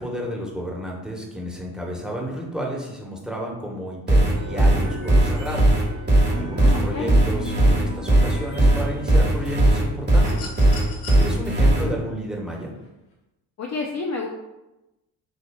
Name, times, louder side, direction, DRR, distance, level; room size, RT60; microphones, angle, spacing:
voice 1, 0.0-5.7 6.3-10.5 11.1-12.7, equal, ahead, -2 dB, 1.2 m, -32 dB
sound 1, 4.1-11.8, right 1 dB, 20° right, 1.3 m, -17 dB
sound 2, 4.3-10.7, right 1 dB, 45° right, 1.1 m, -37 dB
voice 2, 6.5-7.1 13.6-14.3, left 3 dB, 35° left, 0 dB, 0.6 m, -30 dB
sound 3, 10.2-11.2 12.8-12.9, left 5 dB, 80° left, 1.0 m, -39 dB
6.3 x 2.6 x 2.3 m, 0.97 s
hypercardioid pair, 45°, 49 cm